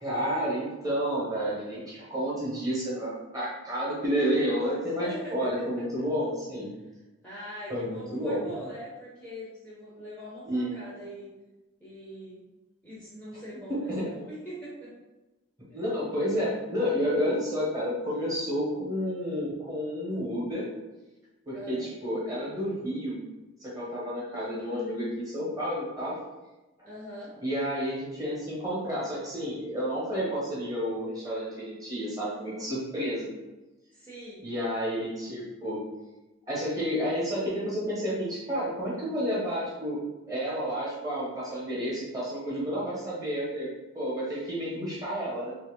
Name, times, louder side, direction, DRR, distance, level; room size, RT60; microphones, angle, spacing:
voice 1, 0.0-6.7 7.7-8.4 10.5-10.7 13.9-14.0 15.7-20.6 21.5-23.2 23.6-26.1 27.4-33.3 34.4-35.8 36.5-40.0 40.3-43.7 43.9-45.5, equal, 15° right, -6 dB, 1.1 m, -30 dB
voice 2, 5.0-5.7 7.2-11.3 11.8-12.4 12.8-14.9 15.7-15.8 21.5-21.8 26.8-27.3 33.9-34.5, equal, 5° left, -9 dB, 0.8 m, -42 dB
3.2 x 2.8 x 3.6 m, 1.1 s
head